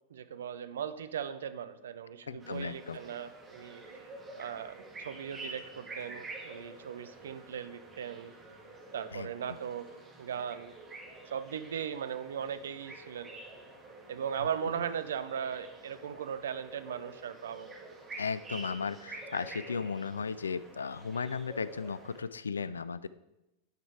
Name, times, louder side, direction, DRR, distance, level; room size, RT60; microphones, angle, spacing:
voice 1, 0.1-3.8 4.4-8.3 8.9-9.9 10.2-10.7 11.3-13.3 14.1-17.7, right 8 dB, 65° right, 12 dB, 0.5 m, -38 dB
voice 2, 2.3-3.0 9.1-9.3 18.2-23.1, left 5 dB, 70° left, 17 dB, 0.3 m, -35 dB
sound 1, 2.4-22.2, right 2 dB, 20° right, 1.7 m, -48 dB
10.5 x 5.1 x 4.6 m, 0.93 s
figure-of-eight pair, 90°, 0 cm